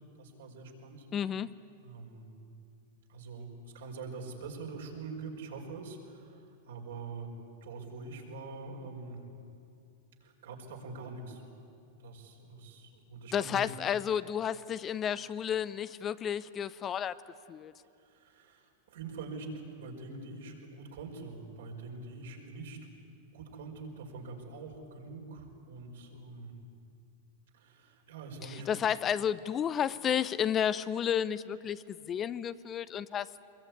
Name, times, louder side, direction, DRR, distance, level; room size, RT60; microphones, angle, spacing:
voice 1, 0.2-1.1 1.8-2.3 3.1-3.5 3.7-7.3 7.6-9.2 10.2-11.4 12.0-13.6 18.0-22.9 23.3-26.5 27.5-28.7, right 3 dB, 75° right, 0 dB, 5.2 m, -44 dB
voice 2, 1.1-1.5 13.3-17.2 17.5-17.7 28.5-33.5, left 9 dB, 30° left, 16 dB, 0.6 m, -32 dB
23.5 x 22.0 x 9.6 m, 2.5 s
hypercardioid pair, 110°, 0 cm